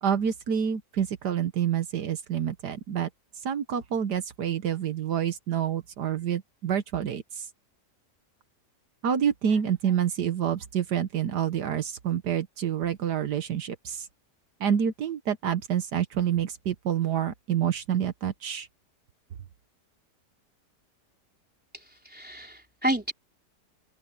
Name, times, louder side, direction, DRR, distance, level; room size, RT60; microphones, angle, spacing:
voice 1, 0.0-3.1 3.4-7.5 9.0-14.1 14.6-18.7, right 9 dB, 75° right, 1.6 m, -28 dB
voice 2, 22.0-23.1, right 1 dB, 5° right, 3.9 m, -29 dB
open air
omnidirectional pair, 1.8 m